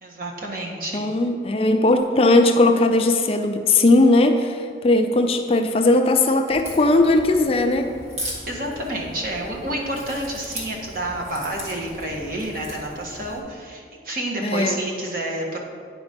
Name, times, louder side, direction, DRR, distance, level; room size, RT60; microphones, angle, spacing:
voice 1, 0.0-1.1 8.5-15.6, right 1 dB, 55° right, -1 dB, 1.4 m, -29 dB
voice 2, 0.9-8.0 14.4-14.8, left 2 dB, 35° left, 5 dB, 0.4 m, -18 dB
Crack, 6.5-13.4, equal, 35° right, 1.8 m, -38 dB
9.9 x 4.9 x 5.2 m, 2.1 s
head